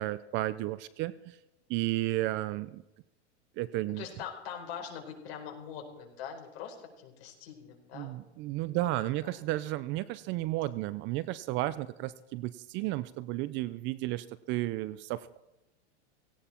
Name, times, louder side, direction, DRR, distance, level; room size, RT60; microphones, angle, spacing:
voice 1, 0.0-1.4 1.7-2.8 3.6-4.1 7.9-15.4, right 16 dB, 35° right, 17 dB, 0.5 m, -33 dB
voice 2, 4.0-8.1 9.2-9.3, left 8 dB, 55° left, 2 dB, 4.5 m, -43 dB
17.5 x 16.5 x 4.4 m, 0.94 s
hypercardioid pair, 130°, 35 cm